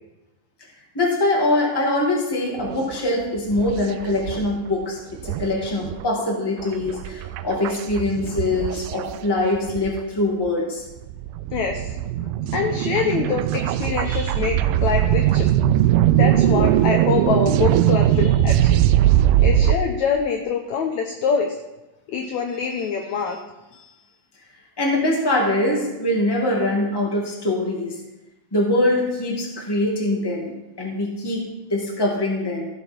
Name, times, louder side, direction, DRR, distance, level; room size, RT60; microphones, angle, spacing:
voice 1, 0.9-4.9 5.2-10.8 24.8-27.9 28.5-31.4 31.7-32.7, left 1 dB, 10° left, -3 dB, 1.6 m, -23 dB
sound 1, 2.6-2.9 3.4-4.6 4.8-4.9 5.2-10.0 10.5-10.6 11.0-19.8, right 12 dB, 90° right, 2.4 m, -20 dB
voice 2, 11.5-15.5 16.1-18.8 19.4-21.5 22.1-23.4, left 6 dB, 75° left, 4 dB, 1.7 m, -25 dB
15.5 x 7.0 x 4.5 m, 1.0 s
omnidirectional pair, 4.3 m